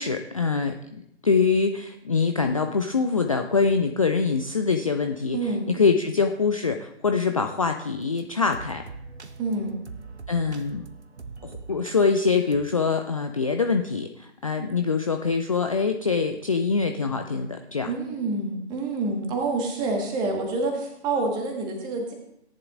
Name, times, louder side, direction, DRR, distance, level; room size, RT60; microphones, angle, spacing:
voice 1, 0.0-8.8 10.3-10.9 11.4-17.9, left 5 dB, 30° left, 6 dB, 0.4 m, -24 dB
voice 2, 5.3-5.7 9.4-9.8 14.6-14.7 17.9-22.1, right 3 dB, 10° right, 2 dB, 1.4 m, -27 dB
sound 1, 7.6-7.7 8.2-8.3 8.5-12.6, right 4 dB, 75° right, 1.1 m, -42 dB
17.5 x 10.5 x 2.5 m, 0.75 s
figure-of-eight pair, 135°, 34 cm